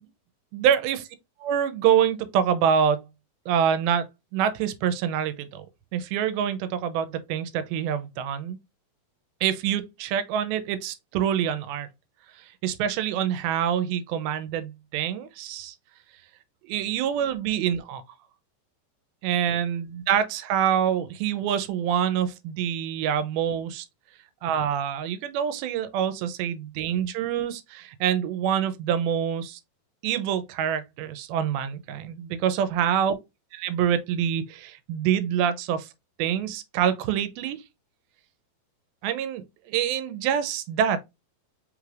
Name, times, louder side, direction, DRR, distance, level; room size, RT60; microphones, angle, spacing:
voice 1, 0.5-1.0 1.4-3.1 3.5-4.1 4.3-5.7 5.9-8.6 9.4-11.9 12.4-15.8 16.7-18.0 19.2-23.9 24.4-29.6 30.0-33.1 33.6-35.9 36.2-37.6 39.0-41.0, right 9 dB, 90° right, 2.4 m, -26 dB
5.4 x 3.2 x 2.4 m
omnidirectional pair, 4.2 m